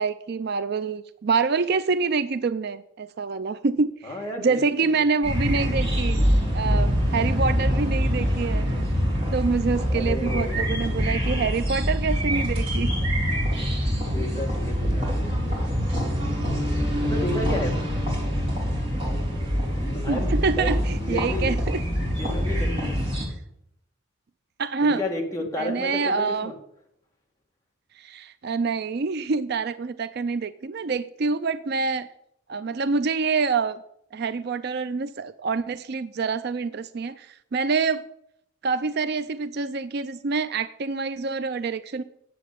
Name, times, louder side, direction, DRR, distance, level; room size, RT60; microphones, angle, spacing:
voice 1, 0.0-6.2 6.5-8.7 9.3-12.9 20.1-21.8 24.6-25.0 25.6-26.5 28.0-32.1 32.5-33.8 34.1-38.0 38.6-42.0, right 4 dB, 50° right, 13 dB, 0.4 m, -26 dB
voice 2, 4.0-5.1 9.9-10.8 14.1-15.8 17.0-17.9 19.8-20.7 21.0-21.5 22.0-23.0 24.8-26.5, left 1 dB, 15° left, 0 dB, 2.0 m, -32 dB
sound 1, 5.2-23.3, equal, 25° right, 3.3 m, -25 dB
9.4 x 7.5 x 8.4 m, 0.74 s
head